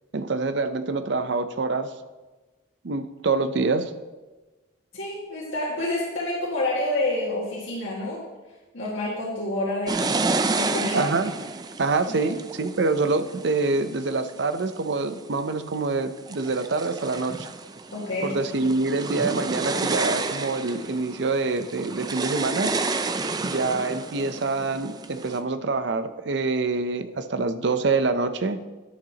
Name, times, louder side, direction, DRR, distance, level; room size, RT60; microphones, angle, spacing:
voice 1, 0.1-1.9 2.8-3.9 10.9-11.3 11.8-17.5 18.2-22.7 23.4-28.6, right 3 dB, 65° right, 10 dB, 0.6 m, -26 dB
voice 2, 4.9-8.2 8.7-10.0 10.5-11.1 12.1-12.3 17.9-18.4, left 1 dB, 85° left, -6 dB, 1.9 m, -28 dB
sound 1, 9.9-14.6 15.2-15.7 16.2-25.4, right 3 dB, 20° right, 0.3 m, -30 dB
10.5 x 10.5 x 2.9 m, 1.2 s
head